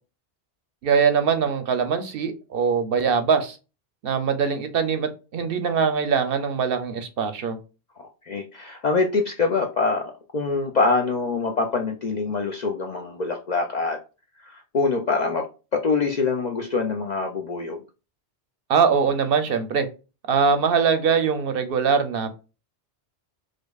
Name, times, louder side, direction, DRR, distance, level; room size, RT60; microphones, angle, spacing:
voice 1, 0.8-3.6 4.0-7.6 18.7-19.9 20.3-22.4, right 6 dB, 65° right, 8 dB, 0.7 m, -22 dB
voice 2, 8.0-14.0 14.4-15.5 15.7-17.8, left 4 dB, 55° left, 2 dB, 0.5 m, -25 dB
5.0 x 2.1 x 2.3 m, 0.31 s
omnidirectional pair, 1.1 m